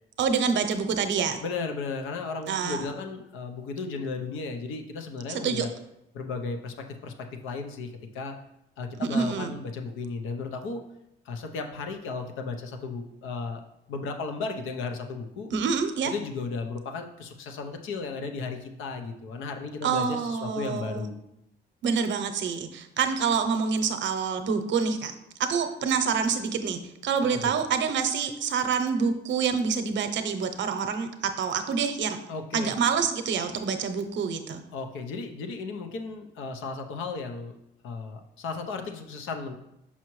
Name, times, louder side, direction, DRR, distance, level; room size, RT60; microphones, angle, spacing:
voice 1, 0.2-1.4 2.5-2.9 5.3-5.7 9.0-9.5 15.5-16.1 19.8-21.1 21.8-25.1 25.4-32.2 32.5-34.6, right 6 dB, 70° right, 8 dB, 0.7 m, -27 dB
voice 2, 1.4-5.7 6.1-6.7 7.0-7.1 7.4-8.4 8.8-10.8 11.2-13.6 13.9-15.5 16.1-21.2 27.2-27.5 32.3-32.8 34.7-37.6 37.8-39.6, left 4 dB, 85° left, 5 dB, 0.7 m, -35 dB
5.9 x 5.6 x 3.1 m, 0.83 s
cardioid pair, 90°, 20 cm